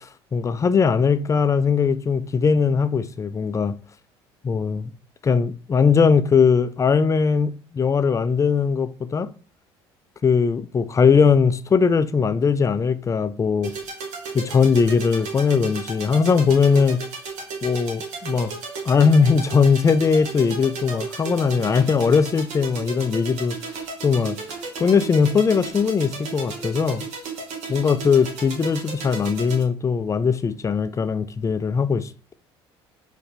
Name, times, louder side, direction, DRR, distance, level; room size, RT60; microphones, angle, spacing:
voice 1, 0.0-3.7 4.4-4.9 5.2-9.3 10.2-13.7 14.3-17.0 17.6-18.5 18.9-23.6 24.0-24.4 24.8-27.0 27.7-32.1, left 5 dB, 25° left, 0.3 m, -20 dB
sound 1, 13.6-29.6, right 4 dB, 65° right, 1.1 m, -34 dB
4.5 x 2.2 x 3.3 m
hypercardioid pair, 65°, 13 cm